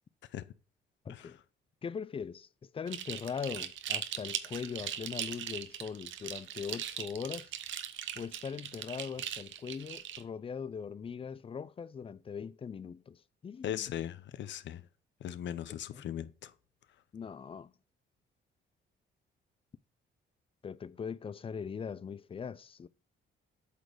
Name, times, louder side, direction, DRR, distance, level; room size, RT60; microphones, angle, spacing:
voice 1, 1.0-1.4 1.8-7.5 8.1-13.8 15.7-16.1 17.1-17.7 20.6-22.9, left 6 dB, 30° left, 0.4 m, -41 dB
sound 1, 2.9-10.2, right 10 dB, 75° right, 0.9 m, -39 dB
voice 2, 13.6-14.8 15.2-16.5, left 11 dB, 65° left, 0.7 m, -38 dB
8.1 x 4.2 x 4.8 m
cardioid pair, 90°, 20 cm